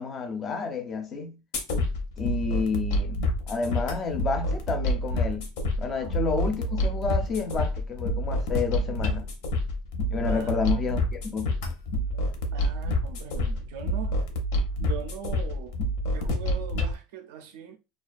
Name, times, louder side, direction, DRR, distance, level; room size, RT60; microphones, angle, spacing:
voice 1, 0.0-1.4 2.2-3.2 3.5-5.5 5.8-9.3 10.1-11.0 11.3-11.5, left 5 dB, 20° left, 0.4 m, -30 dB
sound 1, 1.5-16.9, left 1 dB, 80° left, 0.6 m, -28 dB
voice 2, 5.9-6.3 6.6-6.8 9.2-9.3 10.3-11.0 12.1-14.2 14.8-15.8 16.1-17.8, right 7 dB, 80° right, 0.4 m, -41 dB
2.3 x 2.2 x 2.4 m
cardioid pair, 175°, 0 cm